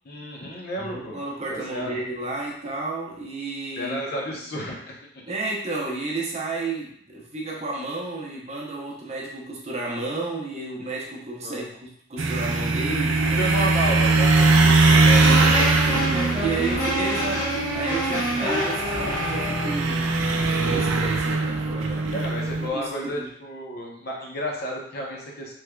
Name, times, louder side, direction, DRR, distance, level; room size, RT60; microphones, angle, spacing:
voice 1, 0.1-1.2 1.5-2.0 3.8-5.0 11.4-11.7 13.4-16.1 22.1-25.5, equal, 50° left, -2 dB, 0.7 m, -32 dB
voice 2, 0.8-4.0 5.3-13.6 13.9-14.1 16.1-20.1 20.6-22.3 22.7-23.3, right 2 dB, 30° right, -3 dB, 0.6 m, -32 dB
sound 1, 12.2-22.7, right 3 dB, 80° right, 0.4 m, -21 dB
sound 2, 15.2-19.8, right 1 dB, 20° left, 0.8 m, -27 dB
3.4 x 3.2 x 2.3 m, 0.66 s
head